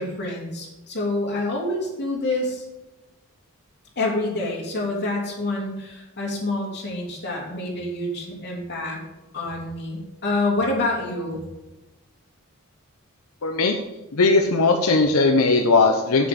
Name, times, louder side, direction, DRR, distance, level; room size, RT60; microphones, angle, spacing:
voice 1, 0.0-2.6 3.9-9.0 9.3-11.4, left 2 dB, 50° left, -3 dB, 3.2 m, -27 dB
voice 2, 13.4-13.8 14.1-16.3, left 3 dB, 85° left, 3 dB, 0.9 m, -18 dB
8.3 x 7.7 x 5.3 m, 1.0 s
head